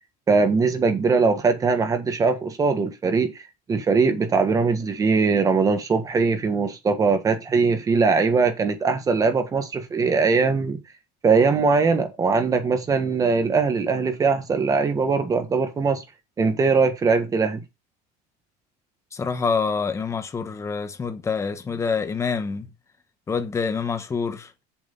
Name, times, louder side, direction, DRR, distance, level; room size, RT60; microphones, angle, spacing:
voice 1, 0.3-10.8 11.2-16.0 16.4-17.6, right 4 dB, 20° right, 1.6 m, -21 dB
voice 2, 19.1-22.7 23.3-24.5, left 5 dB, 15° left, 1.2 m, -26 dB
7.9 x 7.4 x 4.0 m
cardioid pair, 170°, 19 cm